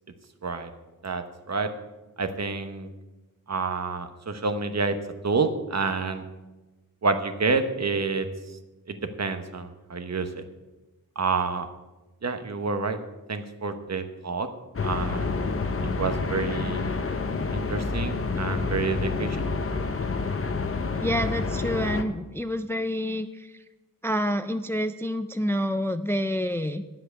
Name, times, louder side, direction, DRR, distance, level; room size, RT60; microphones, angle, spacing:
voice 1, 1.0-1.7 2.2-2.9 3.5-5.0 5.2-6.2 7.0-8.6 8.9-10.4 11.2-11.7 12.2-13.0 13.3-14.5 14.8-15.3 15.8-16.9 17.5-19.6, right 4 dB, 50° right, 8 dB, 1.0 m, -28 dB
sound 1, 14.8-22.0, left 4 dB, 40° left, 0.8 m, -28 dB
voice 2, 21.0-23.6 24.0-26.8, equal, 5° left, 10 dB, 0.4 m, -28 dB
8.8 x 7.7 x 8.1 m, 1.1 s
wide cardioid pair, 105°, 34 cm